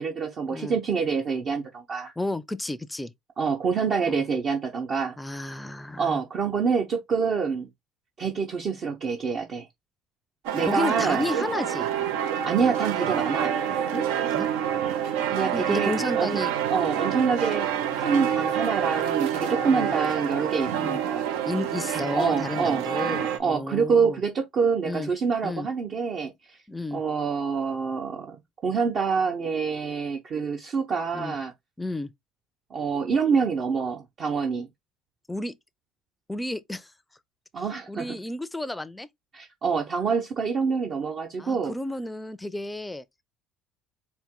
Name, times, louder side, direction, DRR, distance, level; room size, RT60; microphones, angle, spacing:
voice 1, 0.0-2.1 3.4-5.1 6.0-7.7 8.2-9.7 10.5-11.2 12.4-13.6 15.3-16.3 16.7-17.7 17.9-21.3 21.9-22.8 23.4-26.6 26.9-28.4 28.6-31.5 32.7-34.7 37.5-38.2 39.3-41.7, right 5 dB, 50° right, 0.7 m, -26 dB
voice 2, 2.2-3.1 4.1-4.2 5.2-6.2 10.7-11.9 13.9-14.5 15.5-16.5 19.7-19.9 20.8-21.0 21.4-24.2 24.8-25.1 25.4-25.7 26.7-27.0 31.1-31.3 31.8-32.1 35.3-35.6 36.3-36.9 37.9-39.1 41.4-43.0, left 2 dB, 10° left, 0.4 m, -32 dB
sound 1, 10.4-23.4, right 9 dB, 85° right, 0.6 m, -27 dB
4.3 x 2.2 x 3.6 m
supercardioid pair, 85°, 0 cm